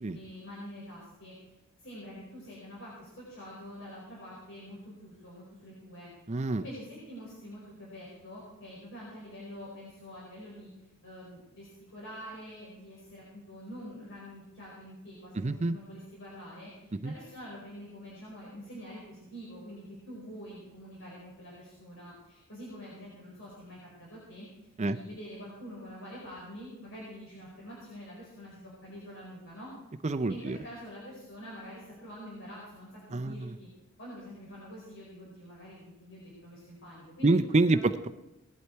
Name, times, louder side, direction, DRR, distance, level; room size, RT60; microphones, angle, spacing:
voice 1, 0.1-6.1 6.6-10.7 11.0-24.5 24.8-29.7 30.3-33.7 34.0-37.3 37.7-37.8, equal, 60° left, -5 dB, 4.8 m, -46 dB
voice 2, 6.3-6.6 15.4-15.7 16.9-17.1 24.8-25.0 30.0-30.6 33.1-33.5 37.2-38.1, right 2 dB, 30° right, 11 dB, 0.5 m, -27 dB
18.0 x 11.5 x 4.6 m, 0.98 s
head